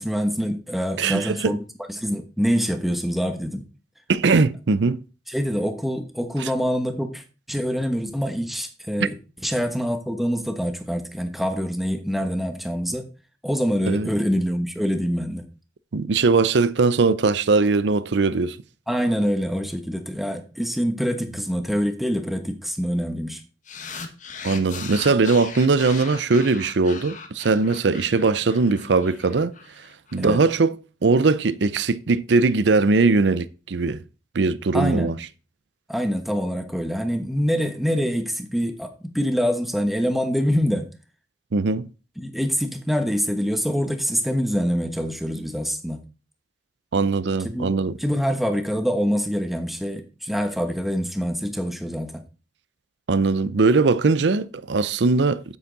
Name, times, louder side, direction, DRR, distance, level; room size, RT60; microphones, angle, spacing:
voice 1, 0.0-1.6 1.9-3.6 5.3-9.2 9.4-13.0 13.4-15.5 18.9-23.4 30.2-30.4 34.7-35.1 35.9-40.9 42.2-46.0 47.4-47.7 48.0-52.2, equal, ahead, 1.1 m, -25 dB
voice 2, 1.0-1.5 4.1-5.0 6.4-6.5 13.9-14.1 15.9-18.6 24.4-29.5 30.1-30.8 31.0-34.0 34.3-35.2 41.5-41.9 46.9-47.9 53.1-55.4, right 4 dB, 75° right, 0.6 m, -20 dB
sound 1, 23.7-30.2, left 5 dB, 45° left, 1.3 m, -38 dB
8.5 x 8.2 x 4.0 m
head